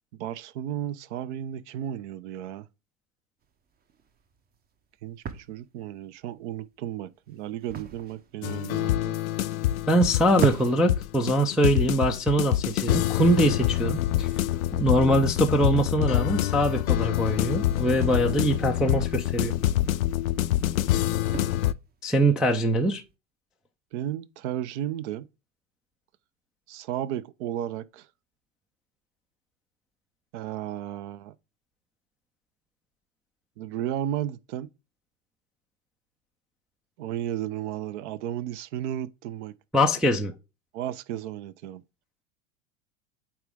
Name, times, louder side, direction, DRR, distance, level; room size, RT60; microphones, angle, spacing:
voice 1, 0.2-2.7 5.0-9.2 23.9-25.3 26.7-28.1 30.3-31.3 33.6-34.7 37.0-39.5 40.7-41.8, right 11 dB, 55° right, 0.7 m, -34 dB
sound 1, 3.4-23.1, right 7 dB, 20° right, 0.7 m, -42 dB
sound 2, 8.4-21.7, left 13 dB, 75° left, 0.5 m, -26 dB
voice 2, 9.9-14.3 14.7-19.5 22.0-23.0 39.7-40.3, right 1 dB, ahead, 0.3 m, -23 dB
8.8 x 3.7 x 3.5 m
hypercardioid pair, 90°, 42 cm